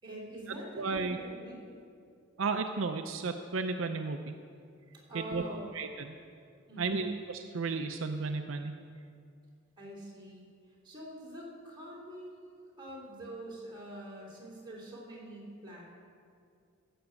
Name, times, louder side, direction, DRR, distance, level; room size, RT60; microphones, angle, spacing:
voice 1, 0.0-1.6 5.1-5.7 6.7-7.1 9.8-10.5 10.8-15.8, right 1 dB, 25° right, -5 dB, 3.2 m, -45 dB
voice 2, 0.8-1.2 2.4-4.3 5.1-5.4 5.7-6.1 6.8-7.1 7.5-8.7, right 4 dB, 75° right, 6 dB, 0.6 m, -33 dB
15.0 x 6.0 x 8.1 m, 2.3 s
head